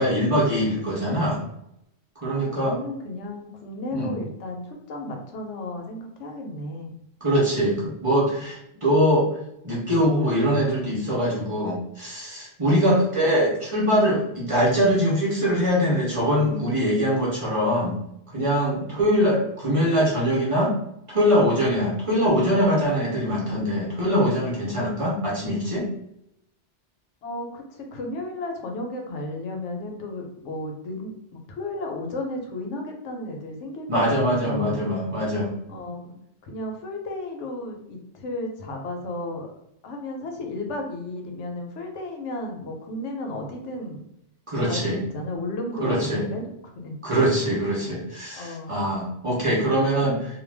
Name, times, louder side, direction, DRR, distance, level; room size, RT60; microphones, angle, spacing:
voice 1, 0.0-1.4 2.2-2.8 3.9-4.1 7.2-9.3 9.6-18.0 18.3-20.7 21.1-25.9 33.9-35.5 44.5-45.0 45.8-46.3 47.0-50.2, equal, 35° right, -5 dB, 0.7 m, -22 dB
voice 2, 2.3-7.0 12.6-13.4 18.7-19.0 27.2-34.9 35.7-36.2 36.4-39.5 39.8-44.0 44.6-46.5 46.7-47.0 48.3-48.9, left 1 dB, 90° left, 2 dB, 1.0 m, -34 dB
2.4 x 2.1 x 3.2 m, 0.79 s
omnidirectional pair, 1.2 m